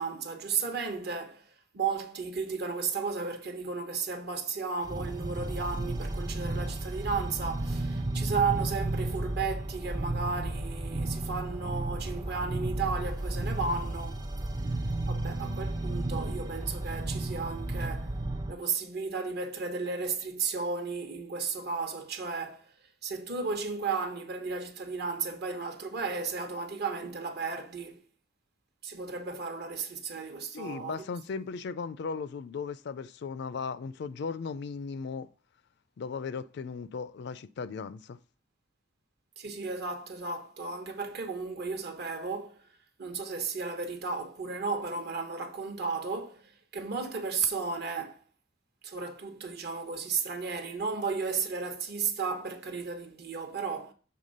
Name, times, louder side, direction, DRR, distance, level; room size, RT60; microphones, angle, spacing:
voice 1, 0.0-1.5 1.7-14.2 15.1-18.1 18.5-22.7 23.0-28.0 28.8-31.0 39.4-42.6 43.0-48.2 48.8-53.9, right 4 dB, 55° right, 0.9 m, -34 dB
sound 1, 4.8-18.5, right 2 dB, 20° right, 0.4 m, -33 dB
voice 2, 30.5-35.3 36.0-38.2, left 5 dB, 60° left, 0.4 m, -37 dB
6.7 x 3.5 x 5.3 m
head